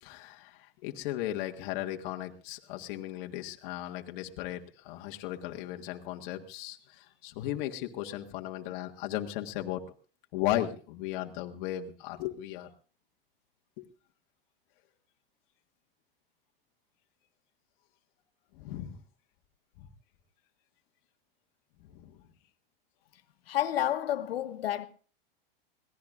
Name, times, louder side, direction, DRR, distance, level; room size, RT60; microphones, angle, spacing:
voice 1, 0.0-9.8 10.3-12.7 13.8-13.9 18.6-19.0 19.8-19.9 21.9-22.1, left 13 dB, 55° left, 1.7 m, -36 dB
voice 2, 23.5-24.9, left 12 dB, 80° left, 1.2 m, -30 dB
22.5 x 17.0 x 2.5 m
hypercardioid pair, 115°, 29 cm